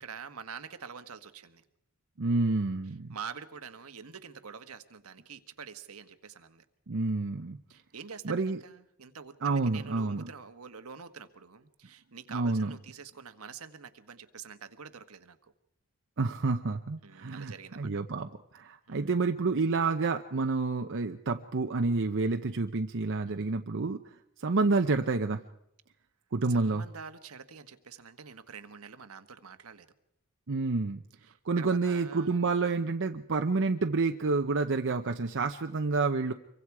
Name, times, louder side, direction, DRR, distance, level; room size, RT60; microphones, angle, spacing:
voice 1, 0.0-1.6 3.1-6.6 7.7-15.5 17.0-17.9 18.9-19.1 23.4-23.6 26.5-29.9 31.3-32.4, right 6 dB, 75° right, 9 dB, 1.3 m, -46 dB
voice 2, 2.2-3.2 6.9-7.6 8.2-8.6 9.4-10.3 12.3-12.8 16.2-25.4 26.3-26.8 30.5-31.0 31.4-36.3, right 3 dB, 60° right, 6 dB, 0.8 m, -29 dB
26.0 x 23.5 x 4.8 m, 0.79 s
head